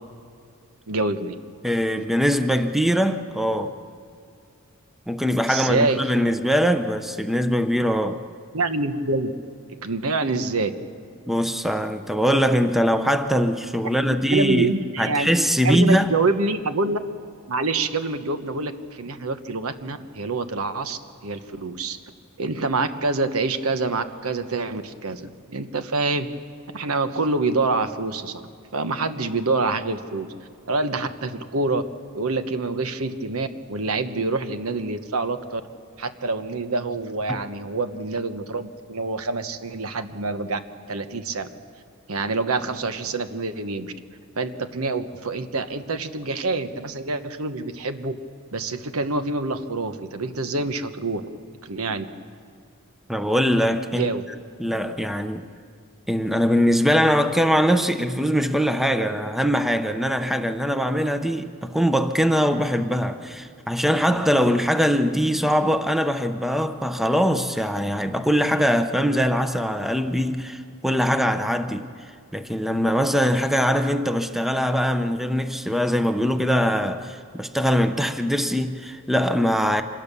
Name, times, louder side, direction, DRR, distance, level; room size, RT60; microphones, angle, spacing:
voice 1, 0.9-1.3 5.5-6.0 8.5-9.3 9.8-10.7 14.3-15.3 15.6-17.0 17.5-22.0 22.4-26.3 26.7-28.4 28.7-30.3 30.7-31.8 32.1-35.6 36.0-40.6 40.9-41.5 42.1-43.9 44.3-48.2 48.5-51.3 51.6-52.0 53.9-54.2, right 3 dB, 80° right, 1.1 m, -26 dB
voice 2, 1.6-3.7 5.1-8.2 11.3-14.7 15.0-16.1 37.3-37.4 53.1-54.1 54.6-55.5 56.1-71.9 72.3-79.8, equal, ahead, 0.7 m, -22 dB
26.0 x 18.0 x 6.9 m
head